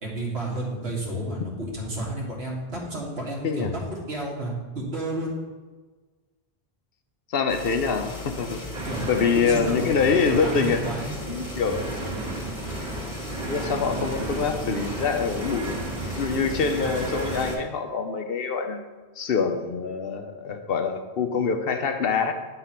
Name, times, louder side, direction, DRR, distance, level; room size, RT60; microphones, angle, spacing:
voice 1, 0.0-3.8 4.1-5.3 8.8-9.0 9.3-9.9 10.3-11.2, right 1 dB, 75° right, -3 dB, 2.0 m, -31 dB
voice 2, 7.3-8.6 9.1-10.8 11.3-12.2 13.5-15.8 16.2-18.8 19.2-22.3, left 5 dB, 65° left, 6 dB, 0.9 m, -25 dB
sound 1, 7.5-17.6, left 2 dB, 45° left, 1.6 m, -37 dB
sound 2, 8.7-17.5, right 2 dB, 45° right, 1.2 m, -33 dB
9.6 x 3.9 x 5.8 m, 1.3 s
omnidirectional pair, 1.1 m